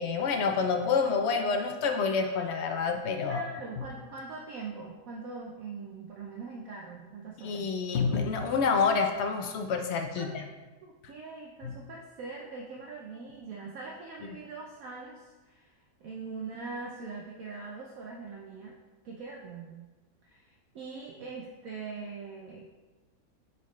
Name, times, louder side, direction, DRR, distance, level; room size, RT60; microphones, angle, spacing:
voice 1, 0.0-3.4 7.4-10.4 11.6-11.7, left 5 dB, 70° left, 5 dB, 0.6 m, -28 dB
voice 2, 3.2-7.7 10.2-10.3 10.8-18.7 19.0-19.9 20.2-22.7, right 4 dB, 65° right, -1 dB, 1.0 m, -42 dB
7.0 x 4.3 x 3.1 m, 1.2 s
omnidirectional pair, 1.7 m